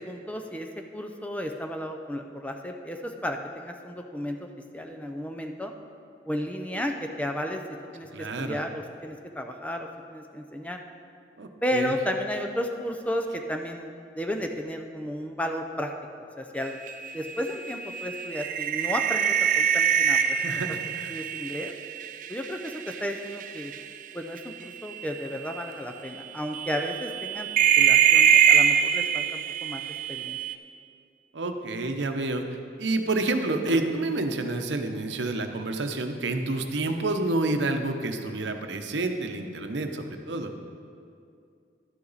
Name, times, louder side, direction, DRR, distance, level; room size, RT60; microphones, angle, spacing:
voice 1, 0.0-4.5 4.7-5.7 6.3-7.6 7.9-10.8 11.6-15.9 16.4-16.8 17.1-20.6 21.1-21.7 22.3-23.7 24.1-27.5 27.8-29.8 30.1-30.4, equal, 10° left, 4 dB, 0.5 m, -33 dB
voice 2, 8.1-8.6 11.4-11.9 20.3-21.2 31.3-32.4 32.8-40.5, right 2 dB, 90° right, 5 dB, 0.8 m, -29 dB
sound 1, 16.7-23.0 23.3-23.8 24.9-25.0 25.5-25.6 26.5-30.5, right 8 dB, 45° right, 0.4 m, -23 dB
12.0 x 8.5 x 4.1 m, 2.4 s
head